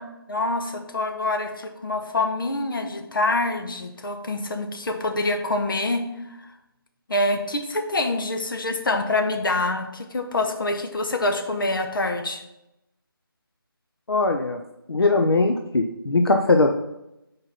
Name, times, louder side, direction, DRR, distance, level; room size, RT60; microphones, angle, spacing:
voice 1, 0.3-6.5 7.1-12.4, left 2 dB, 65° left, 5 dB, 1.1 m, -26 dB
voice 2, 14.1-14.6 14.9-16.7, left 3 dB, 85° left, 4 dB, 0.6 m, -20 dB
5.0 x 4.7 x 5.7 m, 0.89 s
figure-of-eight pair, 160°, 12 cm